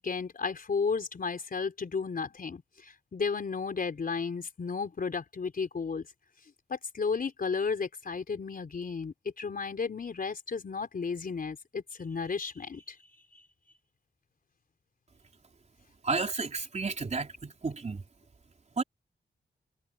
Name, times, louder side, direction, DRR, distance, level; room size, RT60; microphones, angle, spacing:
voice 1, 0.0-6.1 6.7-13.0, left 5 dB, 50° left, 4.4 m, -33 dB
voice 2, 16.0-18.0 18.8-18.9, right 4 dB, 35° right, 4.1 m, -32 dB
wide cardioid pair, 125°, 19 cm